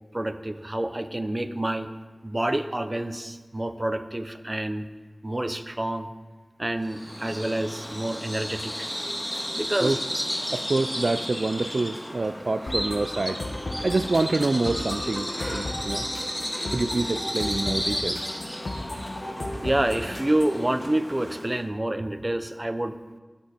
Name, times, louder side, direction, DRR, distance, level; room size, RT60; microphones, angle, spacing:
voice 1, 0.1-1.9 2.2-4.9 5.2-6.1 6.6-8.9 9.5-10.0 19.6-23.0, right 1 dB, 30° right, 9 dB, 0.8 m, -28 dB
Bird vocalization bird call bird song, 6.8-21.6, equal, 10° left, 1.8 m, -33 dB
voice 2, 10.4-13.4 13.8-16.1 16.7-18.4, right 3 dB, 70° right, 10 dB, 0.3 m, -26 dB
sound 1, 12.7-20.7, left 1 dB, 90° left, 1.7 m, -35 dB
20.0 x 7.2 x 4.4 m, 1.3 s
wide cardioid pair, 60°, 0 cm